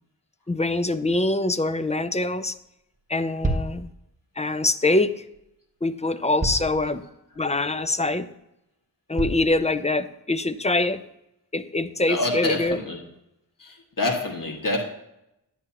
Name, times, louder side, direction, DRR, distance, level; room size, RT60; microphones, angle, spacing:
voice 1, 0.5-2.6 3.1-3.9 4.4-5.2 5.8-7.0 7.4-8.3 9.1-11.0 11.5-12.8, left 2 dB, 15° left, 12 dB, 0.5 m, -24 dB
sound 1, 2.9-3.0 3.4-3.8 5.3-5.4 6.4-6.8 7.3-7.4 8.0-8.1 9.2-9.5, right 2 dB, 20° right, 1.3 m, -27 dB
voice 2, 12.1-13.0 13.6-14.8, left 2 dB, 50° left, 0 dB, 2.0 m, -27 dB
10.5 x 9.7 x 2.9 m, 0.84 s
wide cardioid pair, 70°, 41 cm